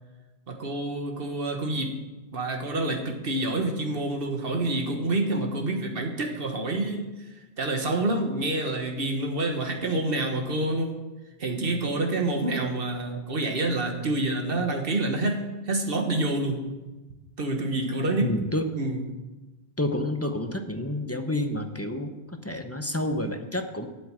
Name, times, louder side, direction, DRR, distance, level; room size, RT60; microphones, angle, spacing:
voice 1, 0.5-2.0 2.3-7.1 7.3-11.0 11.4-16.7 17.4-18.4 18.8-19.0, right 2 dB, 65° right, 4 dB, 1.6 m, -27 dB
voice 2, 18.2-18.7 19.8-23.9, left 1 dB, 15° left, 6 dB, 0.7 m, -29 dB
8.1 x 7.9 x 8.8 m, 1.1 s
omnidirectional pair, 1.1 m